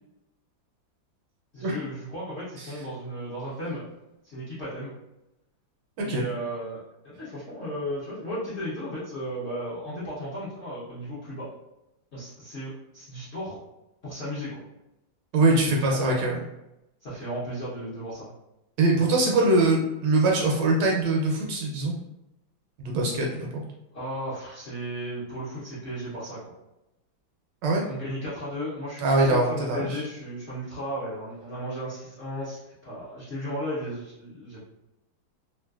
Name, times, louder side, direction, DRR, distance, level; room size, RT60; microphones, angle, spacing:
voice 1, 1.5-3.8 4.2-4.9 6.0-11.5 12.1-13.6 14.0-14.6 15.6-16.3 17.0-18.3 23.9-26.5 27.9-34.6, equal, 50° left, -10 dB, 0.9 m, -35 dB
voice 2, 15.3-16.4 18.8-21.9 22.8-23.6 27.6-27.8 29.0-30.0, right 2 dB, 75° right, -2 dB, 1.2 m, -22 dB
3.2 x 2.5 x 2.4 m, 0.91 s
omnidirectional pair, 2.1 m